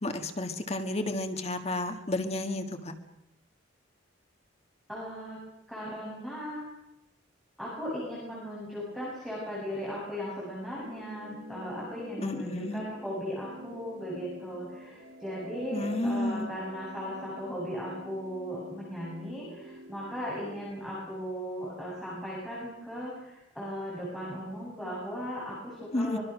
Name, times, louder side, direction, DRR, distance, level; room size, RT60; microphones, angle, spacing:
voice 1, 0.0-2.9 12.2-12.8 15.7-16.5 25.9-26.2, left 1 dB, 35° left, 6 dB, 1.6 m, -31 dB
voice 2, 4.9-5.4 5.7-6.7 7.6-26.2, equal, ahead, -7 dB, 7.5 m, -37 dB
sound 1, 10.8-20.7, equal, 65° right, 5.6 m, -47 dB
25.0 x 22.5 x 6.4 m, 0.87 s
head